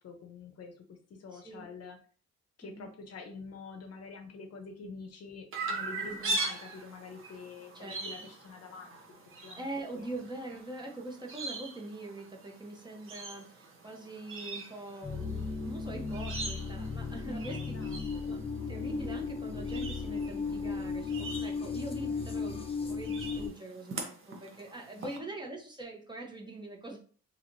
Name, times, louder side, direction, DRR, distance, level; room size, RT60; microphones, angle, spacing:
voice 1, 0.0-2.0 2.6-9.0 9.4-10.1 17.3-18.4 25.0-25.3, left 4 dB, 55° left, 5 dB, 0.7 m, -47 dB
voice 2, 1.3-1.7 2.6-2.9 6.0-6.4 7.7-8.3 9.6-18.0 18.3-18.4 18.7-27.0, right 2 dB, 15° right, 0 dB, 0.8 m, -43 dB
Chirp tweet, 5.5-25.2, right 2 dB, 45° right, 0.9 m, -42 dB
sound 1, 15.0-23.5, left 4 dB, 20° left, 0.8 m, -36 dB
3.1 x 2.9 x 2.6 m, 0.43 s
cardioid pair, 90°, 30 cm